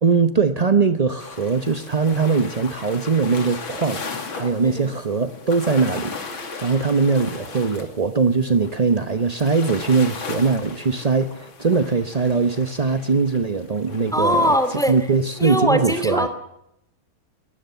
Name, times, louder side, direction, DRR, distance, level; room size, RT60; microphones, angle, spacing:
voice 1, 0.0-14.5 14.9-16.3, right 4 dB, 45° right, 10 dB, 0.5 m, -21 dB
sound 1, 1.2-15.6, left 4 dB, 70° left, 3.3 m, -37 dB
voice 2, 4.6-4.9 14.1-14.9 15.4-16.3, equal, ahead, 10 dB, 2.4 m, -21 dB
21.5 x 19.0 x 7.0 m, 0.82 s
omnidirectional pair, 2.3 m